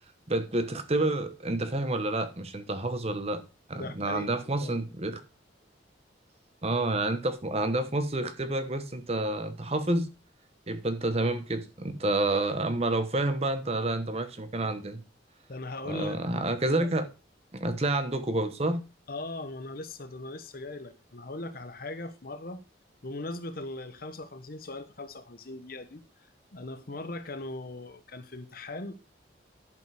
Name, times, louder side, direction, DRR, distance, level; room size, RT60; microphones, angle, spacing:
voice 1, 0.3-3.4 3.7-5.2 6.6-10.1 10.7-15.0 15.8-17.1 17.5-18.8, right 2 dB, 35° right, 1.0 m, -29 dB
voice 2, 3.7-4.3 4.6-4.7 15.5-16.9 19.1-22.6 23.0-26.0 26.5-29.0, left 2 dB, 50° left, 1.0 m, -39 dB
11.0 x 5.3 x 4.8 m
head